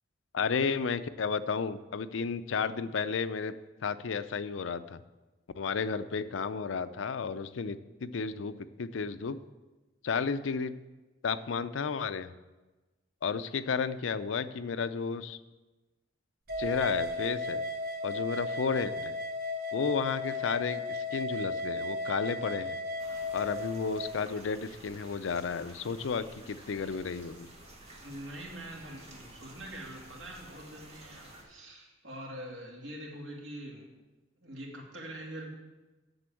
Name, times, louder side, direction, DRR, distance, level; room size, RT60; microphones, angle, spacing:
voice 1, 0.3-3.5 3.8-5.0 5.5-9.4 10.0-10.7 11.2-12.3 13.2-15.4 16.6-17.6 18.0-19.2 19.7-22.8 23.3-27.5, left 5 dB, 85° left, 13 dB, 0.5 m, -32 dB
sound 1, 16.5-24.2, left 2 dB, 50° right, 0.9 m, -35 dB
sound 2, 23.0-31.4, right 1 dB, 35° right, 1.8 m, -52 dB
voice 2, 28.0-33.9 34.4-35.5, right 1 dB, 70° right, -2 dB, 2.6 m, -44 dB
7.9 x 6.9 x 7.6 m, 1.2 s
head